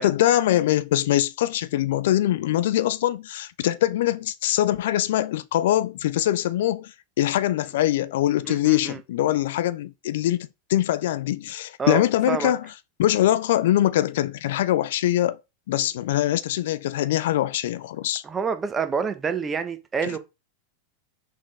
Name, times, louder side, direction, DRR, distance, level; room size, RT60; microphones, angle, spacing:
voice 1, 0.0-12.7 13.0-15.4 15.7-18.2 20.0-20.2, left 13 dB, 75° left, 0.3 m, -23 dB
voice 2, 8.4-9.0 11.8-12.0 12.3-12.5 18.2-20.2, right 6 dB, 20° right, 0.8 m, -27 dB
4.3 x 3.6 x 3.2 m
hypercardioid pair, 115°, 0 cm